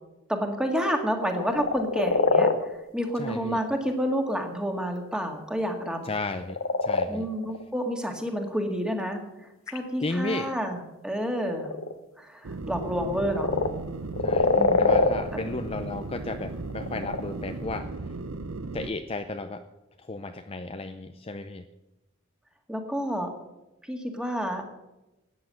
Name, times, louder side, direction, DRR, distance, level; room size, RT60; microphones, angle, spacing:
voice 1, 0.3-6.0 7.1-11.7 12.2-13.5 14.5-15.0 15.3-15.4 22.7-23.3 23.8-24.6, equal, 5° right, 3 dB, 1.9 m, -29 dB
sound 1, 1.2-2.6 3.2-3.4 6.4-7.6 9.7-9.8 10.4-10.8 11.4-11.9 13.0-13.7 14.1-15.1 16.7-17.2, left 3 dB, 75° left, 1.1 m, -24 dB
voice 2, 3.2-3.6 6.0-7.3 10.0-10.5 14.2-17.9 18.7-19.6 20.0-21.6, left 3 dB, 30° left, 7 dB, 0.6 m, -34 dB
sound 2, 12.4-18.9, right 3 dB, 75° right, 0.8 m, -36 dB
13.5 x 9.4 x 7.7 m, 0.99 s
head